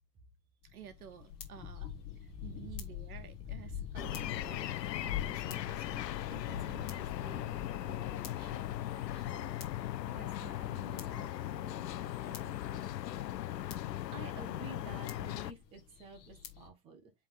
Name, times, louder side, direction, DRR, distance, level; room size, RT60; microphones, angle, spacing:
sound 1, 0.6-16.7, left 9 dB, 20° left, 1.5 m, -46 dB
voice 1, 0.6-1.9 2.2-12.9, right 9 dB, 60° right, 1.3 m, -54 dB
sound 2, 4.0-15.5, left 13 dB, 85° left, 0.7 m, -38 dB
sound 3, 6.5-9.3, left 6 dB, 65° left, 1.5 m, -51 dB
voice 2, 14.1-17.1, right 3 dB, 10° right, 1.0 m, -50 dB
8.0 x 3.7 x 3.7 m
hypercardioid pair, 160°, 48 cm